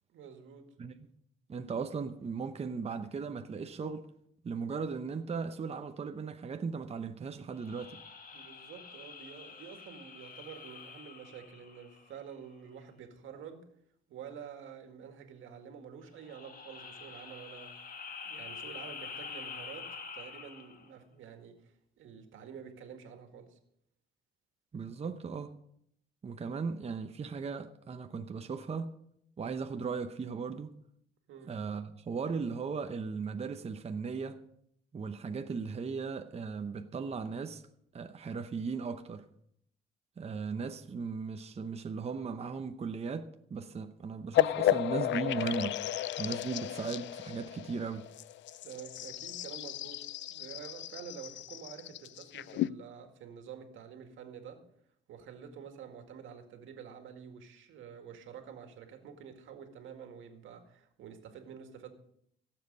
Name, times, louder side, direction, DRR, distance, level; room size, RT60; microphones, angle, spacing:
voice 1, 0.1-0.7 8.3-13.7 14.1-17.9 18.2-23.6 31.3-31.6 48.6-54.6 55.1-61.9, right 7 dB, 80° right, 2.0 m, -48 dB
voice 2, 1.5-4.1 4.4-8.0 24.7-25.5 26.2-29.0 29.4-30.7 31.5-34.4 34.9-37.6 37.9-39.2 40.2-45.8 46.2-48.1, right 5 dB, 30° right, 0.7 m, -37 dB
sound 1, 7.6-12.3 16.1-20.9, left 5 dB, 45° left, 1.6 m, -46 dB
sound 2, 44.3-52.7, left 13 dB, 70° left, 0.4 m, -33 dB
17.0 x 7.5 x 5.4 m
cardioid pair, 90°, 20 cm